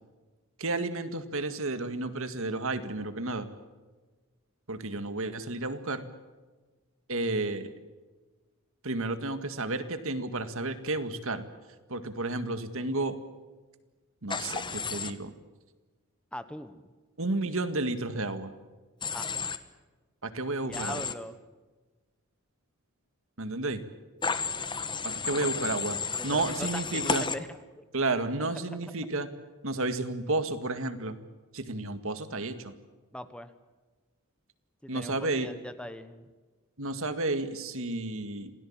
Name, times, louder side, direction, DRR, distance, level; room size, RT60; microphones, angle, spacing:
voice 1, 0.6-3.5 4.7-6.1 7.1-7.8 8.8-11.5 11.9-13.2 14.2-15.3 17.2-18.5 20.2-21.0 23.4-23.8 25.0-26.0 26.2-27.3 27.9-29.3 29.6-31.2 31.5-32.7 34.9-35.5 36.8-38.5, right 2 dB, 65° right, 10 dB, 2.0 m, -31 dB
Human voice / Train, 14.3-15.1 19.0-19.6 20.7-21.1 24.2-27.4, left 5 dB, 20° left, 1.2 m, -32 dB
voice 2, 16.3-16.9 19.1-19.3 20.6-21.4 25.3-25.6 26.1-27.8 28.7-29.1 33.1-33.5 34.8-36.3, left 1 dB, 5° left, 11 dB, 1.1 m, -41 dB
27.0 x 17.5 x 8.8 m, 1.3 s
head